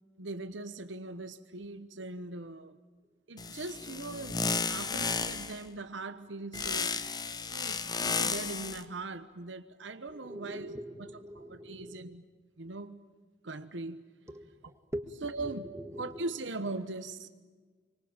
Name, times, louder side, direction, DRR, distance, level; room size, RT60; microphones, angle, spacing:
voice 1, 0.2-2.8 3.3-7.0 7.5-11.1 11.4-12.2 12.6-13.0 13.4-14.0 15.2-15.7 16.0-17.3, right 2 dB, 80° right, 1.1 m, -40 dB
sound 1, 3.4-5.6 6.5-8.8, left 5 dB, 20° left, 1.0 m, -33 dB
voice 2, 10.1-12.0 14.3-16.3 16.8-16.9, equal, 15° right, 1.6 m, -43 dB
26.0 x 24.5 x 8.9 m
head